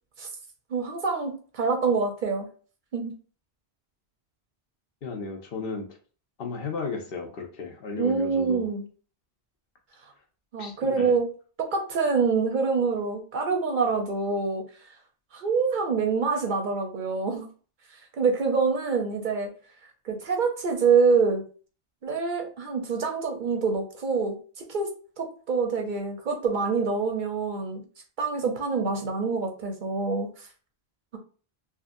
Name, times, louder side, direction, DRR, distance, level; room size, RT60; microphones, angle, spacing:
voice 1, 0.7-2.5 2.9-3.1 8.0-8.9 10.5-11.3 11.6-14.6 15.3-17.5 18.2-19.5 20.0-21.4 22.0-24.4 24.7-24.9 25.2-27.8 28.2-30.5, right 5 dB, 55° right, 0.7 m, -26 dB
voice 2, 5.0-5.9 6.4-8.7 10.6-11.1, left 4 dB, 70° left, 0.8 m, -34 dB
2.8 x 2.4 x 2.5 m
omnidirectional pair, 1.0 m